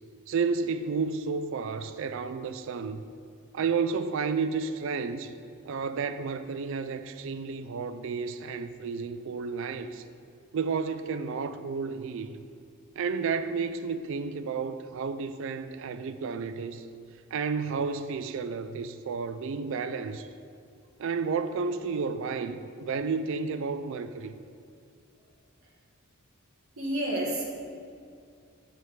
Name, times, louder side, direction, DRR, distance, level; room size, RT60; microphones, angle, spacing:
voice 1, 0.3-3.0 3.5-5.3 5.6-10.0 10.5-12.3 13.0-16.9 17.3-20.3 21.0-24.3, right 5 dB, 65° right, 0.4 m, -31 dB
voice 2, 26.8-27.4, right 1 dB, 85° right, 1.4 m, -29 dB
6.7 x 4.5 x 4.8 m
head